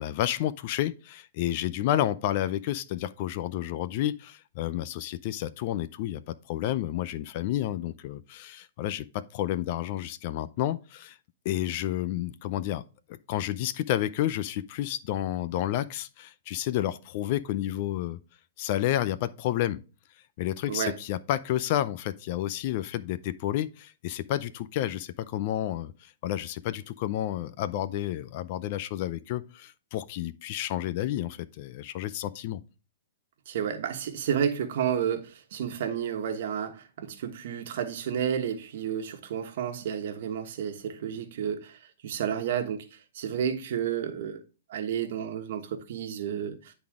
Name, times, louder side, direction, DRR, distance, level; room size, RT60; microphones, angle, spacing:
voice 1, 0.0-11.2 11.4-12.8 13.3-18.2 18.6-19.8 20.4-32.6, left 13 dB, 45° left, 0.5 m, -30 dB
voice 2, 33.5-42.9 43.1-44.4 44.7-46.7, right 8 dB, 60° right, 1.3 m, -31 dB
10.5 x 4.0 x 3.6 m
hypercardioid pair, 150°, 0 cm